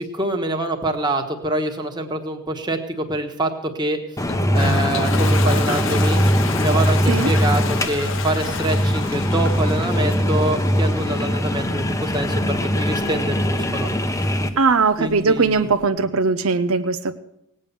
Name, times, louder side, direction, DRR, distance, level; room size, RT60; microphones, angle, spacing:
voice 1, 0.0-4.0 4.5-6.2 6.6-13.9 15.0-15.7, right 1 dB, 20° right, 4 dB, 1.4 m, -25 dB
sound 1, 4.2-14.5, equal, 15° left, 0.8 m, -21 dB
Toilet flush, 4.3-15.9, left 6 dB, 60° left, 0.7 m, -34 dB
voice 2, 14.6-17.1, right 4 dB, 70° right, 9 dB, 0.7 m, -19 dB
18.0 x 8.8 x 6.9 m, 0.80 s
head